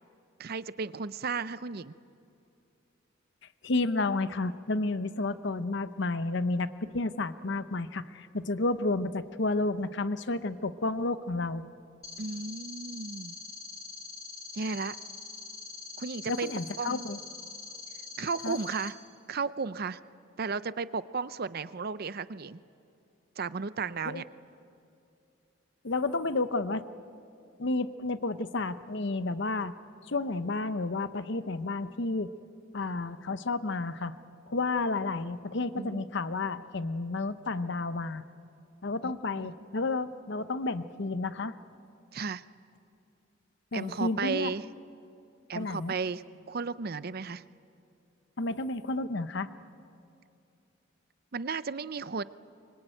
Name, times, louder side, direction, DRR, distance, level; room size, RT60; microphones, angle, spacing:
voice 1, 0.4-1.9 12.2-13.4 14.5-15.0 16.0-16.5 16.8-17.1 18.2-19.0 19.3-20.0 20.4-22.6 23.4-24.2 35.8-36.0 39.0-39.1 39.4-39.7 42.1-42.4 43.7-44.6 45.5-47.4 51.3-52.2, right 4 dB, 50° right, 15 dB, 0.6 m, -34 dB
voice 2, 3.6-11.6 16.3-17.2 18.4-18.6 24.0-24.2 25.8-26.8 27.6-29.7 30.1-32.3 32.7-34.1 34.5-38.2 38.8-41.5 43.7-44.5 45.5-45.9 48.4-49.5, left 2 dB, 60° left, 12 dB, 0.8 m, -31 dB
sound 1, 12.0-18.9, left 4 dB, 20° left, 3.7 m, -44 dB
24.5 x 24.5 x 9.0 m, 2.6 s
head